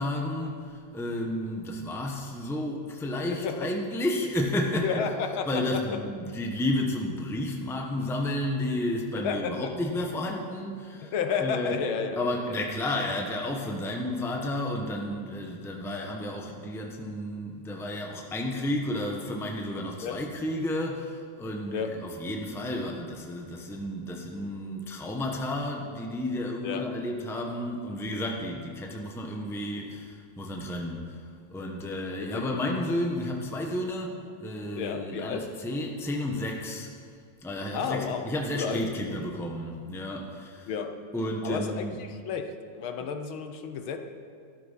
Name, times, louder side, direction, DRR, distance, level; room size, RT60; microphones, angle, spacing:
voice 1, 0.0-11.8 12.2-31.2 31.5-34.1 34.4-36.9 37.4-40.8 41.1-42.0, left 1 dB, ahead, 1 dB, 1.0 m, -32 dB
voice 2, 3.3-3.7 4.7-6.0 9.2-9.7 11.0-12.3 20.0-20.2 21.7-22.0 26.6-26.9 32.2-32.8 34.8-35.5 37.7-38.9 40.7-41.0 41.4-44.0, left 6 dB, 75° left, 6 dB, 1.8 m, -32 dB
13.5 x 13.0 x 5.8 m, 2.2 s
omnidirectional pair, 2.3 m